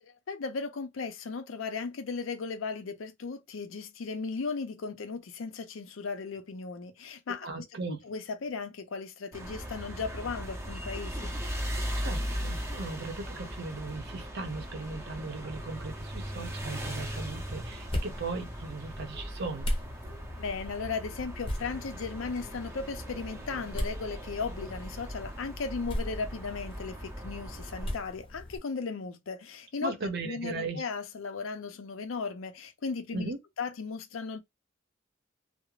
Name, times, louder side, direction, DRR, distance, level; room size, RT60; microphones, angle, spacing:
voice 1, 0.0-7.5 7.9-11.3 20.4-29.9 30.2-33.3 33.6-34.4, left 4 dB, 85° left, 0.5 m, -36 dB
voice 2, 7.4-8.0 12.0-19.7 29.8-30.8 33.1-33.4, right 3 dB, 60° right, 0.7 m, -37 dB
sound 1, 9.3-27.9, equal, 15° right, 0.5 m, -38 dB
sound 2, 17.5-28.6, equal, 30° left, 0.7 m, -39 dB
2.4 x 2.0 x 3.0 m
head